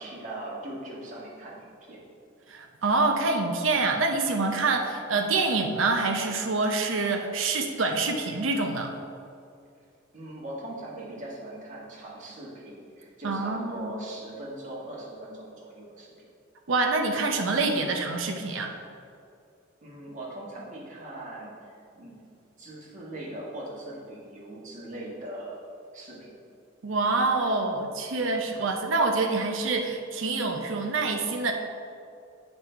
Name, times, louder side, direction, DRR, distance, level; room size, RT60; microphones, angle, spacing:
voice 1, 0.0-2.0 10.1-16.1 19.8-22.2 22.6-25.6 25.9-26.3, right 1 dB, 40° right, -5 dB, 1.7 m, -40 dB
voice 2, 2.5-9.0 13.2-13.9 16.7-18.7 26.8-31.5, right 3 dB, 80° right, 3 dB, 0.7 m, -26 dB
8.0 x 5.3 x 4.5 m, 2.4 s
head